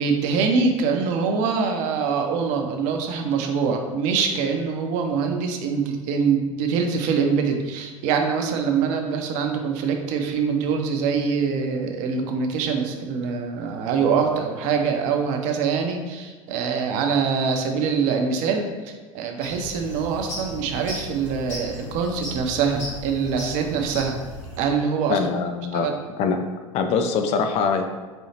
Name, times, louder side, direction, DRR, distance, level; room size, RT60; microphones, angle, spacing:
voice 1, 0.0-24.2 24.6-25.2 25.7-26.0, right 5 dB, 50° right, 4 dB, 0.5 m, -24 dB
sound 1, 19.4-24.6, equal, 75° left, 1.5 m, -36 dB
voice 2, 25.1-25.9 26.2-26.4 26.7-27.9, left 5 dB, 40° left, 6 dB, 0.4 m, -23 dB
4.2 x 2.7 x 2.8 m, 1.4 s
figure-of-eight pair, 80°, 17 cm